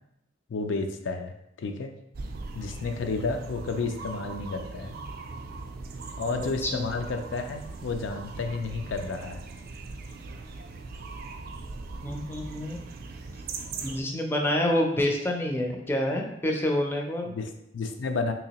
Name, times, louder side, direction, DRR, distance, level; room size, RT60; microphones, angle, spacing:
voice 1, 0.5-1.3 1.6-1.9 2.5-4.9 6.2-9.4 17.3-18.3, left 4 dB, 75° left, 5 dB, 0.4 m, -31 dB
sound 1, 2.1-14.0, right 3 dB, 55° right, 0.4 m, -40 dB
voice 2, 6.4-6.9 12.0-12.8 13.8-17.3, left 1 dB, 10° left, 1 dB, 0.4 m, -27 dB
3.5 x 2.9 x 2.8 m, 0.81 s
head